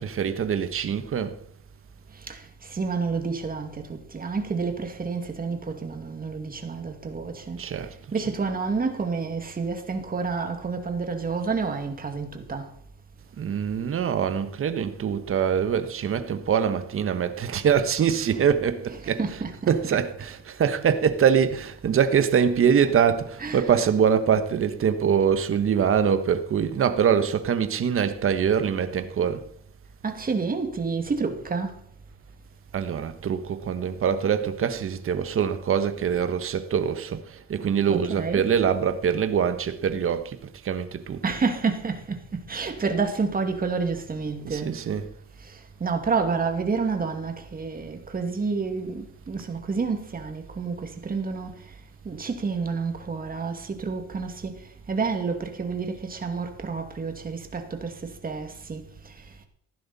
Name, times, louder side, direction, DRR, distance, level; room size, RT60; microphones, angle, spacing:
voice 1, 0.0-1.3 7.6-7.9 13.4-19.2 19.7-29.4 32.7-40.4 40.6-41.2 44.4-45.1, right 7 dB, 45° right, 1.3 m, -24 dB
voice 2, 2.7-7.6 8.1-12.7 19.2-19.7 23.4-23.6 30.0-31.7 37.9-38.4 41.2-44.7 45.8-51.5 52.1-54.6 54.9-57.9 58.2-58.9, right 4 dB, 30° right, 2.2 m, -29 dB
15.0 x 11.5 x 4.2 m
cardioid pair, 110°, 31 cm